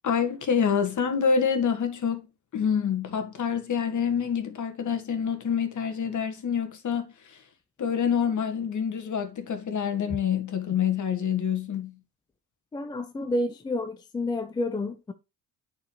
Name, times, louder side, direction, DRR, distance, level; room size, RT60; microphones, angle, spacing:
voice 1, 0.0-2.3 2.5-7.4 7.8-12.0, left 7 dB, 35° left, 1.6 m, -27 dB
voice 2, 12.7-15.1, left 2 dB, 10° left, 0.4 m, -30 dB
9.4 x 4.5 x 3.0 m
hypercardioid pair, 65°, 50 cm